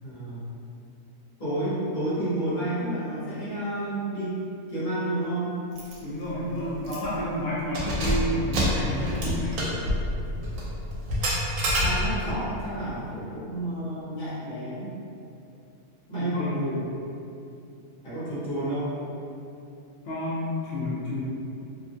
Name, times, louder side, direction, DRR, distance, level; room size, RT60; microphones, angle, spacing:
voice 1, 0.0-0.5 1.4-4.4 4.7-5.6 6.4-6.8 11.8-14.9 16.1-16.9 18.0-19.0, right 1 dB, 35° left, -12 dB, 1.1 m, -30 dB
Keys jangling, 5.8-6.0 6.3-6.4 6.8-7.2 7.6-12.4, equal, 85° right, 1.1 m, -27 dB
voice 2, 6.0-9.6 16.2-16.6 20.0-21.2, left 1 dB, 60° left, -9 dB, 0.8 m, -30 dB
2.8 x 2.3 x 2.6 m, 2.7 s
omnidirectional pair, 1.5 m